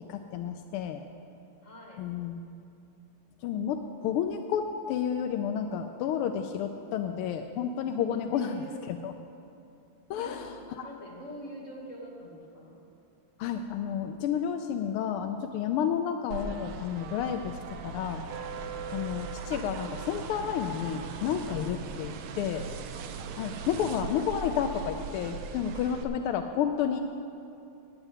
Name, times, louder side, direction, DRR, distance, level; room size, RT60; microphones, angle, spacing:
voice 1, 0.1-1.0 2.0-2.4 3.4-8.6 8.9-9.1 10.1-10.5 10.8-10.9 13.4-17.6 17.8-18.2 18.9-22.7 23.4-27.0, left 8 dB, 85° left, 6 dB, 1.5 m, -31 dB
voice 2, 1.6-2.0 8.3-8.7 10.2-12.8 23.6-24.1, equal, 35° left, -4 dB, 2.8 m, -45 dB
sound 1, 16.3-26.0, right 5 dB, 80° right, 1.6 m, -39 dB
9.6 x 8.0 x 8.9 m, 2.7 s
omnidirectional pair, 2.4 m